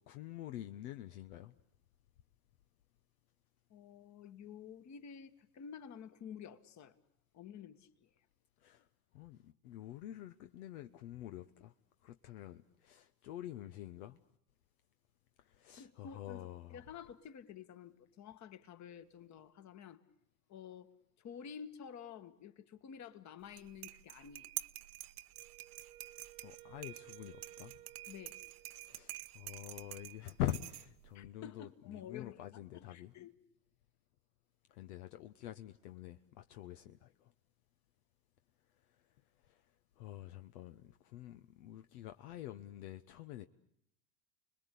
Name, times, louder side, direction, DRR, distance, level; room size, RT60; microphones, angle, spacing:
voice 1, 0.1-1.5 8.6-8.8 9.1-11.7 12.0-14.2 15.5-16.8 26.4-27.7 28.8-33.1 34.7-37.3 39.5-39.6 40.0-43.5, left 13 dB, 65° left, 1.0 m, -46 dB
voice 2, 3.7-7.0 7.3-7.9 15.8-20.0 20.5-20.9 21.2-24.5 28.1-28.4 31.1-33.4, left 8 dB, 35° left, 1.7 m, -51 dB
sound 1, 23.4-31.1, right 16 dB, 70° right, 1.0 m, -48 dB
Wind instrument woodwind instrument, 25.3-29.2, right 14 dB, 85° right, 1.3 m, -58 dB
30.0 x 21.0 x 8.4 m
hypercardioid pair, 95°, 46 cm